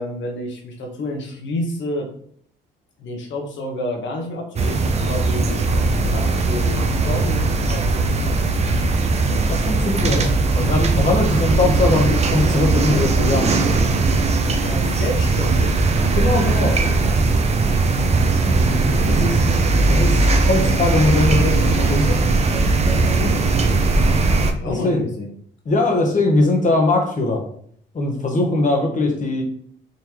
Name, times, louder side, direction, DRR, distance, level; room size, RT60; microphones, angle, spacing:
voice 1, 0.0-2.1 3.0-5.7 6.0-8.4 14.4-15.9 19.0-19.3 22.9-23.4 24.4-25.3, left 1 dB, 70° left, 2 dB, 1.0 m, -30 dB
sound 1, 4.6-24.5, right 3 dB, 35° right, 0.5 m, -19 dB
voice 2, 9.5-13.6 16.1-16.8 19.1-19.4 19.9-22.2 24.6-25.0 25.7-27.4 27.9-29.4, left 2 dB, 40° left, 2 dB, 1.0 m, -20 dB
3.8 x 3.2 x 2.9 m, 0.62 s
cardioid pair, 90°, 20 cm